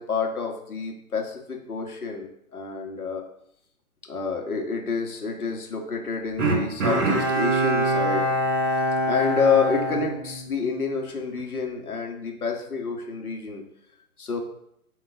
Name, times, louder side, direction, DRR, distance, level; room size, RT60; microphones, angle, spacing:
voice 1, 0.0-3.2 4.1-8.3 9.0-13.6 14.2-14.4, left 5 dB, 70° left, 1 dB, 1.5 m, -28 dB
Bowed string instrument, 6.4-10.9 11.3-11.4, right 1 dB, 60° right, 2.4 m, -24 dB
7.1 x 3.0 x 4.5 m, 0.73 s
figure-of-eight pair, 145°, 45 cm